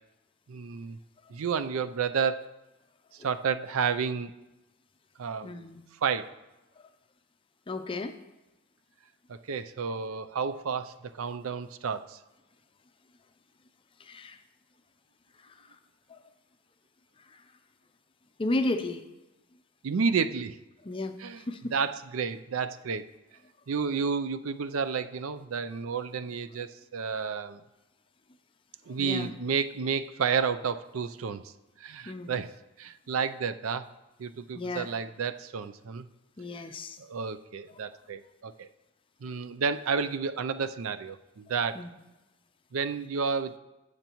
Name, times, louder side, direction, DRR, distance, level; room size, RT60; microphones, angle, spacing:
voice 1, 0.5-1.0 1.3-2.5 3.2-4.3 5.2-5.7 6.0-6.3 9.3-12.2 19.8-20.6 21.2-21.4 21.7-23.0 23.7-27.6 28.9-31.5 31.8-32.5 32.8-33.9 34.2-36.0 37.0-38.7 39.2-41.8 42.7-43.6, right 6 dB, 80° right, 12 dB, 0.5 m, -31 dB
voice 2, 5.4-5.8 7.7-8.1 14.0-14.4 15.4-15.6 16.1-16.2 18.4-19.0 20.8-21.7 29.0-29.3 32.1-32.4 34.5-34.9 36.4-37.0 41.8-41.9, left 2 dB, 25° left, 8 dB, 0.5 m, -33 dB
16.0 x 6.6 x 3.0 m, 1.0 s
head